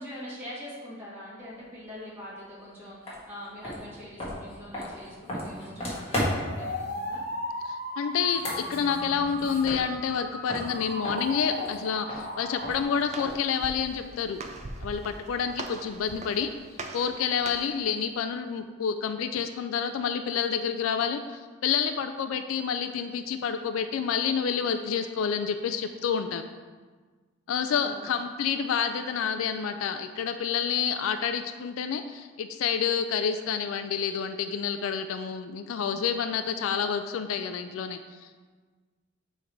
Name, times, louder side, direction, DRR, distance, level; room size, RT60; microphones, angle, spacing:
voice 1, 0.0-7.2 27.7-28.1, left 1 dB, 10° right, -8 dB, 1.4 m, -43 dB
sound 1, 3.0-3.2 3.6-6.6 8.1-10.2 10.5-13.5, equal, 30° left, 1.4 m, -35 dB
sound 2, 6.0-12.8, left 1 dB, 50° left, 1.0 m, -37 dB
voice 2, 7.7-14.4 14.8-16.5 16.9-26.4 27.5-38.4, left 7 dB, 90° left, 9 dB, 0.3 m, -29 dB
Walk footsteps, 12.5-17.8, right 2 dB, 35° right, 0.5 m, -42 dB
7.0 x 3.3 x 4.6 m, 1.4 s
head